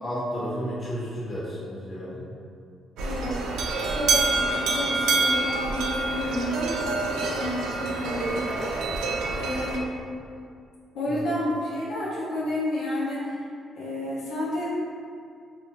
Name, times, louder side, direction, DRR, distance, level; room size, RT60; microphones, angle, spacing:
voice 1, 0.0-2.2 11.1-11.3, equal, 30° left, -8 dB, 0.9 m, -32 dB
voice 2, 3.0-3.4 3.9-9.8 10.9-13.4 13.8-14.7, left 1 dB, 90° left, -7 dB, 0.6 m, -31 dB
sound 1, 3.0-9.8, right 3 dB, 85° right, 0.3 m, -27 dB
2.5 x 2.4 x 3.0 m, 2.4 s
cardioid pair, 90°, 0 cm